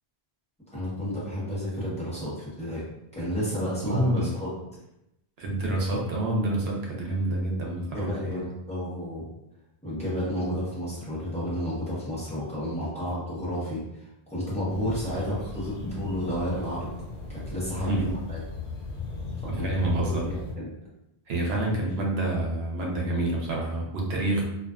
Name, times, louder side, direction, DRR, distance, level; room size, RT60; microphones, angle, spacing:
voice 1, 0.7-2.8 3.1-4.5 7.9-9.3 9.8-16.9 17.3-18.4 19.5-20.7, equal, 5° left, -10 dB, 0.9 m, -31 dB
voice 2, 3.8-4.3 5.4-8.4 17.9-18.1 19.4-20.3 21.3-24.4, right 1 dB, 80° right, -2 dB, 0.9 m, -27 dB
sound 1, 14.7-20.5, left 3 dB, 85° left, 1.0 m, -37 dB
2.4 x 2.4 x 2.3 m, 0.87 s
omnidirectional pair, 1.0 m